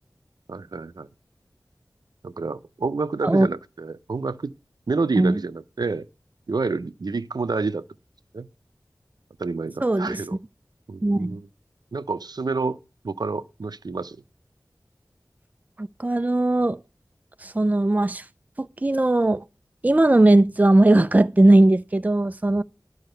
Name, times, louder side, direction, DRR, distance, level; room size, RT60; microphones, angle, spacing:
voice 1, 0.5-1.1 2.2-4.5 4.9-6.1 6.5-7.8 8.3-8.5 9.4-10.3 10.9-11.5 11.9-12.8 13.0-14.2, right 4 dB, 75° right, 0.6 m, -28 dB
voice 2, 9.8-10.2 11.0-11.4 15.8-16.8 17.4-18.2 18.6-19.4 19.8-22.6, right 2 dB, 20° right, 0.5 m, -19 dB
11.5 x 4.7 x 7.8 m
wide cardioid pair, 40°, 7 cm